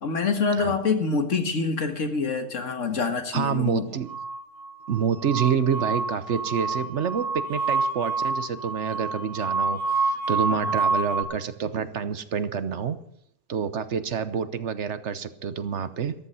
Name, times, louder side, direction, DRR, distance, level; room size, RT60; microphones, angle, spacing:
voice 1, 0.0-3.9 10.5-10.7, left 4 dB, 80° left, 6 dB, 2.0 m, -26 dB
voice 2, 3.3-4.1 4.9-13.0 13.5-16.1, right 7 dB, 70° right, 12 dB, 1.2 m, -28 dB
sound 1, 4.1-11.2, right 3 dB, 35° right, 1.3 m, -28 dB
14.0 x 13.5 x 5.6 m, 0.69 s
omnidirectional pair, 1.3 m